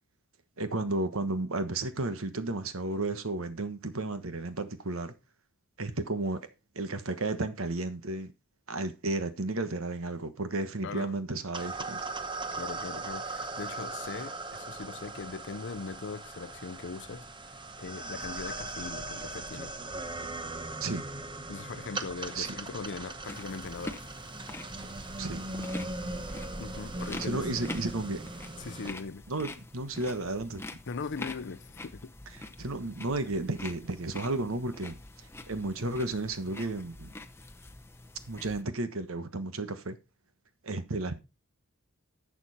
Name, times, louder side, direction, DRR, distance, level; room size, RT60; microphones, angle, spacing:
voice 1, 0.6-5.1 5.8-6.5 6.7-8.3 8.7-12.0 20.8-21.0 21.9-22.0 22.3-22.5 25.2-25.4 27.2-28.2 29.3-30.6 32.6-35.0 35.5-37.1 38.3-40.0 40.6-41.2, right 2 dB, 70° right, 1.3 m, -33 dB
voice 2, 10.8-11.2 12.5-17.3 17.8-19.7 21.5-24.0 26.6-27.6 28.6-29.2 30.9-32.1, left 4 dB, 60° left, 0.6 m, -40 dB
sound 1, 11.5-28.9, right 2 dB, 25° right, 1.0 m, -39 dB
sound 2, 23.3-38.6, left 2 dB, 10° left, 0.9 m, -45 dB
11.0 x 7.2 x 4.2 m
head